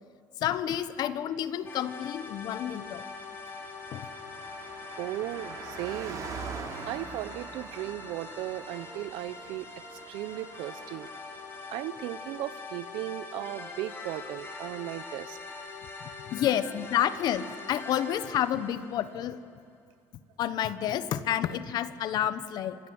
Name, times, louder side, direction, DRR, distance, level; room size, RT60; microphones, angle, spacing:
voice 1, 0.4-3.1 3.9-4.1 16.0-19.4 20.4-22.8, left 10 dB, 60° left, 13 dB, 1.1 m, -30 dB
sound 1, 1.7-19.5, left 4 dB, 30° left, 4.4 m, -43 dB
Car passing by, 2.6-14.4 14.7-14.8, right 5 dB, 50° right, 3.4 m, -45 dB
voice 2, 5.0-6.3 6.9-11.1 11.7-15.4, right 15 dB, 75° right, 16 dB, 0.7 m, -36 dB
26.0 x 19.5 x 7.9 m, 2.4 s
cardioid pair, 115°, 8 cm